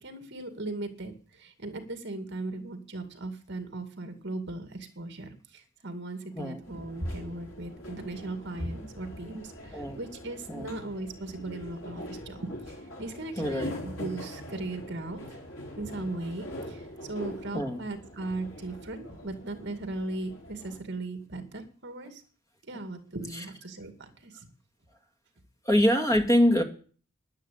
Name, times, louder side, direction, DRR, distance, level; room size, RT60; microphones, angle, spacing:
voice 1, 0.0-15.2 15.8-22.2 22.7-24.5, right 2 dB, 55° right, 7 dB, 2.3 m, -38 dB
sound 1, 6.6-20.8, equal, 65° left, 4.8 m, -42 dB
voice 2, 13.4-13.7 17.5-17.8 23.3-23.4 25.6-26.6, equal, 15° left, 4 dB, 2.1 m, -24 dB
11.0 x 10.5 x 8.6 m, 0.42 s
head